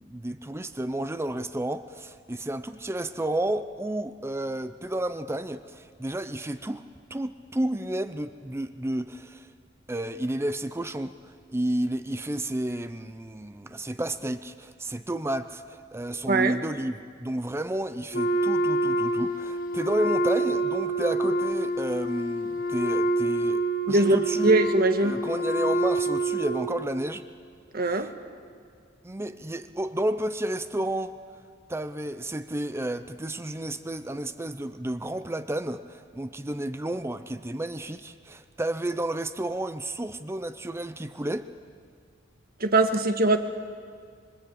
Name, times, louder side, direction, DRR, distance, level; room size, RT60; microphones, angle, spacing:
voice 1, 0.0-6.8 7.1-9.5 9.9-24.4 25.0-27.3 27.9-28.1 29.0-31.2 31.7-41.5, right 1 dB, 15° right, 10 dB, 0.6 m, -31 dB
voice 2, 16.3-16.6 23.9-25.2 27.7-28.1 42.6-43.4, right 2 dB, 50° right, 7 dB, 1.5 m, -22 dB
Wind instrument woodwind instrument, 18.1-26.9, right 1 dB, 45° left, 1.3 m, -27 dB
26.5 x 22.0 x 8.4 m, 2.1 s
head